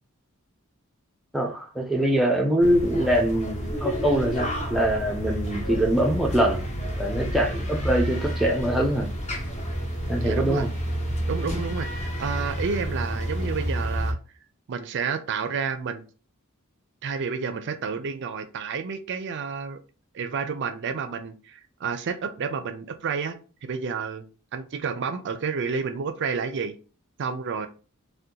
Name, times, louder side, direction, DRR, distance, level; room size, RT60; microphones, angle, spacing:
voice 1, 1.3-6.7 7.0-9.1 10.1-10.7, right 1 dB, ahead, 0.5 m, -23 dB
sound 1, 2.6-14.1, equal, 30° left, 0.8 m, -30 dB
voice 2, 10.2-10.7 11.3-14.2 14.7-16.0 17.0-19.8 20.1-26.7 27.2-27.7, right 5 dB, 55° right, 0.4 m, -30 dB
2.8 x 2.2 x 3.6 m
head